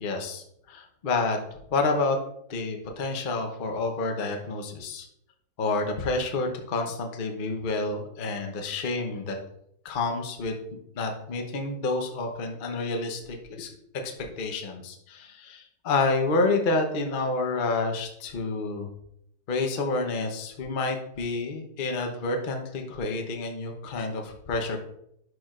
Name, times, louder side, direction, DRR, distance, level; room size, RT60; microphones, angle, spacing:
voice 1, 0.0-1.4 1.7-2.2 2.5-5.1 5.6-9.4 9.8-10.6 10.9-13.8 14.2-18.9 19.5-24.8, left 3 dB, 45° left, 3 dB, 0.7 m, -29 dB
11.0 x 4.7 x 2.4 m, 0.73 s
omnidirectional pair, 2.1 m